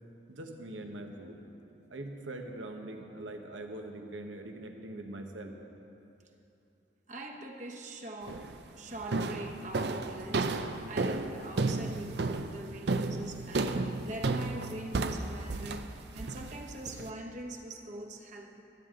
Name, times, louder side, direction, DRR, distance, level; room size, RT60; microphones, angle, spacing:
voice 1, 0.3-1.4 1.9-5.6, right 1 dB, 90° right, 3 dB, 1.3 m, -42 dB
voice 2, 7.1-8.5 8.8-18.6, right 1 dB, 40° right, 2 dB, 1.1 m, -43 dB
sound 1, 8.3-8.6 9.1-17.1, right 3 dB, 65° right, 0.5 m, -32 dB
23.5 x 9.3 x 3.8 m, 2.9 s
head